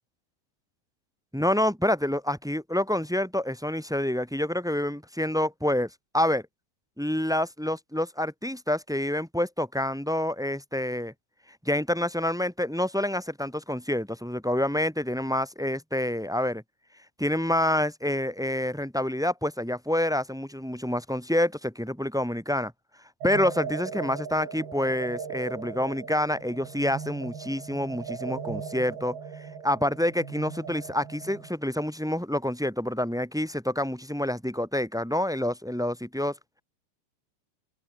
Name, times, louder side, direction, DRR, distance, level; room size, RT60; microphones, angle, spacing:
voice 1, 1.3-6.4 7.0-11.1 11.7-16.6 17.2-22.7 23.2-29.2 29.6-36.3, left 1 dB, ahead, 3.5 m, -27 dB
sound 1, 23.2-31.5, right 6 dB, 60° right, 6.3 m, -38 dB
open air
omnidirectional pair, 5.1 m